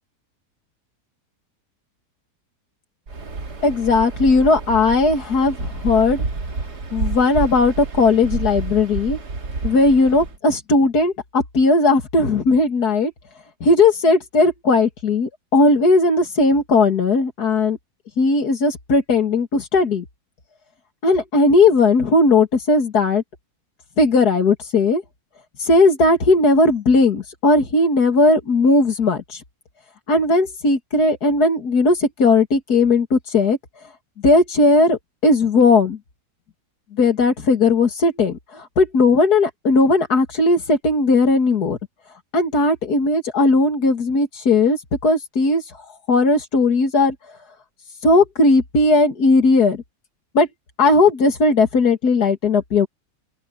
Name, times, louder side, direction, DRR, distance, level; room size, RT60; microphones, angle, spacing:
Waves surf, 3.1-10.4, right 3 dB, 80° right, 3.1 m, -29 dB
voice 1, 3.6-6.2 6.9-9.2 9.6-13.1 13.6-17.8 18.2-20.0 21.0-23.2 24.0-25.0 25.6-29.4 30.1-33.6 34.2-36.0 36.9-41.8 42.3-45.6 46.1-47.1 48.0-49.8 50.3-50.5 50.8-52.9, left 3 dB, 70° left, 2.7 m, -17 dB
open air
omnidirectional pair, 1.7 m